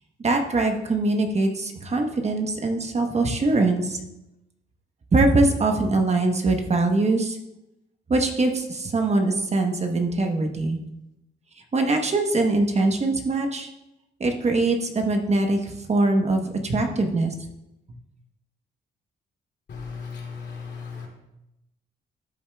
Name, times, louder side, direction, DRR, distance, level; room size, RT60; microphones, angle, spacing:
voice 1, 0.2-4.0 5.1-7.4 8.1-10.8 11.7-13.7 14.2-17.3, right 2 dB, 35° right, 4 dB, 1.0 m, -22 dB
voice 2, 19.7-21.1, left 5 dB, 60° left, -1 dB, 2.7 m, -36 dB
13.0 x 7.2 x 2.3 m, 0.90 s
cardioid pair, 90°, 20 cm